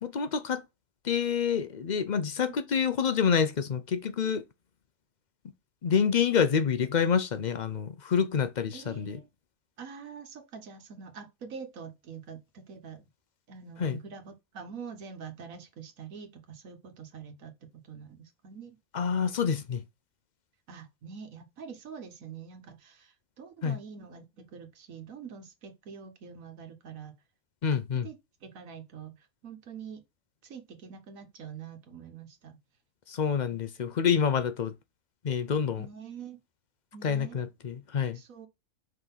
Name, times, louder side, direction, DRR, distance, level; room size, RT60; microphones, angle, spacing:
voice 1, 0.0-0.6 1.0-4.4 5.8-9.2 13.8-14.0 18.9-19.8 23.6-23.8 27.6-28.1 33.1-34.7 35.2-35.9 37.0-38.2, left 7 dB, 50° left, 0.5 m, -27 dB
voice 2, 8.7-9.3 9.8-13.1 13.5-17.5 17.8-18.8 20.7-27.1 27.7-28.2 28.4-30.0 30.4-32.6 33.5-33.6 35.8-36.4 36.9-37.4 38.1-38.5, right 6 dB, 75° right, 1.6 m, -45 dB
5.2 x 3.8 x 5.6 m
omnidirectional pair, 1.4 m